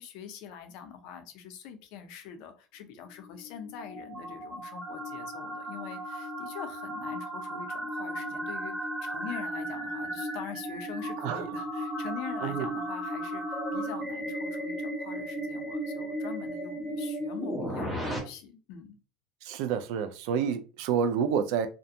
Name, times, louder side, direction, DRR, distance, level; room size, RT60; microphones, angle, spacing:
voice 1, 0.0-19.0, left 7 dB, 60° left, 0.5 m, -44 dB
sound 1, 3.1-18.2, right 1 dB, 5° right, 0.7 m, -35 dB
voice 2, 19.4-21.7, right 7 dB, 65° right, 0.4 m, -28 dB
2.4 x 2.2 x 2.7 m
cardioid pair, 155°, 0 cm